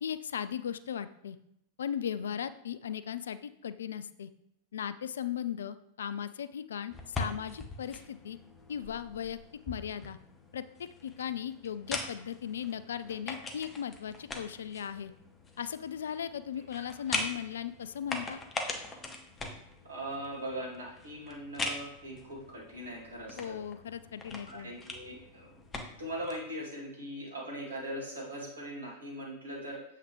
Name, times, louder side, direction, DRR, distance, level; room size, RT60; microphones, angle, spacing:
voice 1, 0.0-1.4 1.8-4.3 4.7-8.4 8.7-9.4 9.7-10.2 10.5-15.1 15.6-18.4 23.4-24.7, left 9 dB, 65° left, 13 dB, 0.4 m, -37 dB
sound 1, 6.9-26.4, left 3 dB, 20° left, 1.1 m, -42 dB
voice 2, 19.8-23.6 24.5-25.6 26.0-29.8, right 1 dB, 75° right, -2 dB, 2.4 m, -40 dB
7.9 x 5.7 x 3.2 m, 0.76 s
figure-of-eight pair, 90°, 0 cm